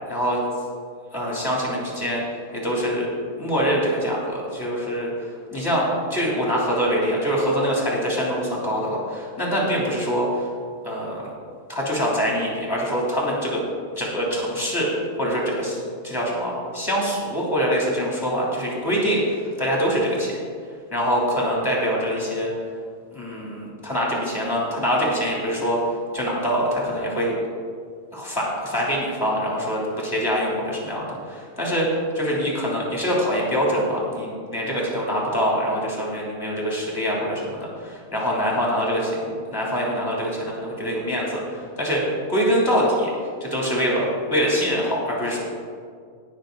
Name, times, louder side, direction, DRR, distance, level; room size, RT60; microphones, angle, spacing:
voice 1, 0.1-0.4 1.1-2.2 2.5-3.1 3.4-10.5 10.8-11.3 11.7-13.6 14.0-20.3 20.9-22.5 23.1-25.8 26.1-27.4 28.1-31.9 32.1-43.1 43.4-45.4, equal, 15° left, -4 dB, 3.0 m, -24 dB
19.0 x 6.5 x 3.9 m, 2.1 s
omnidirectional pair, 1.7 m